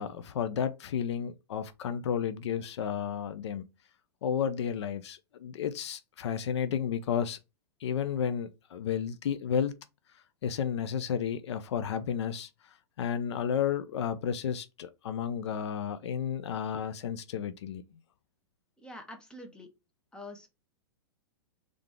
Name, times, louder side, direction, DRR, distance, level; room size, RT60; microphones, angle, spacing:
voice 1, 0.0-3.7 4.2-7.4 7.8-9.7 10.4-12.5 13.0-17.8, left 8 dB, 75° left, 0.6 m, -32 dB
voice 2, 18.8-19.7 20.1-20.5, left 1 dB, 5° left, 1.1 m, -45 dB
3.8 x 3.4 x 3.3 m
hypercardioid pair, 120°, 15 cm